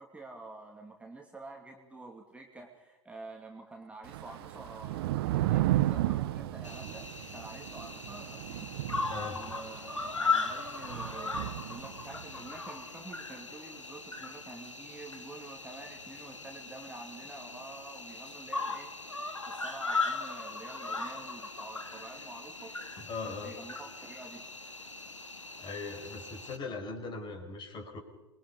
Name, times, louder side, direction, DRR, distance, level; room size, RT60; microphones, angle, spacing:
voice 1, 0.0-7.1 7.3-8.7 9.3-23.0 23.2-24.5, right 2 dB, 10° right, 1 dB, 2.7 m, -48 dB
Thunder / Rain, 4.0-12.4, right 15 dB, 55° right, 1.0 m, -33 dB
Cricket, 6.6-26.6, left 4 dB, 85° left, 1.9 m, -38 dB
voice 2, 9.1-9.4 23.0-23.5 25.6-28.0, left 3 dB, 30° left, 5 dB, 5.2 m, -39 dB
27.5 x 22.5 x 5.5 m, 1.1 s
figure-of-eight pair, 85°, 15 cm